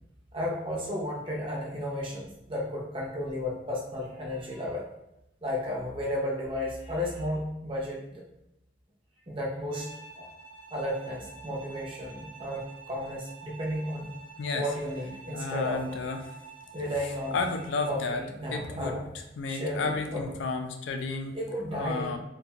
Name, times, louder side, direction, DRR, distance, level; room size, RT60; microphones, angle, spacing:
voice 1, 0.3-4.9 5.4-8.2 9.3-9.9 10.2-10.3 10.7-14.1 14.5-16.0 16.7-17.5 17.9-19.1 19.5-20.3 21.3-22.2, left 1 dB, 30° right, -3 dB, 0.6 m, -33 dB
Bowed string instrument, 9.7-18.1, right 4 dB, 65° right, 0.6 m, -48 dB
voice 2, 15.3-16.2 17.3-18.2 18.5-19.0 19.4-21.4 21.7-22.2, left 3 dB, 75° left, 5 dB, 0.4 m, -32 dB
2.5 x 2.2 x 2.8 m, 0.86 s
head